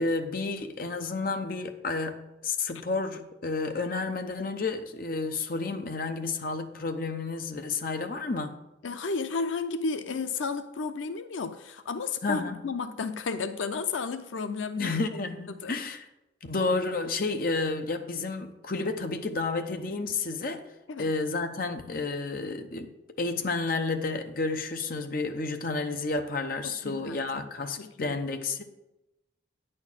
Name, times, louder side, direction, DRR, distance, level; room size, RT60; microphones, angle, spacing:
voice 1, 0.0-8.6 12.2-12.6 14.8-16.1 16.4-20.6 21.0-22.9 23.2-28.6, left 3 dB, 50° left, 0.8 m, -31 dB
voice 2, 8.8-15.0 15.5-15.8 20.9-21.1 26.6-27.5 27.8-28.2, left 4 dB, 90° left, 0.5 m, -33 dB
9.5 x 4.4 x 7.2 m
head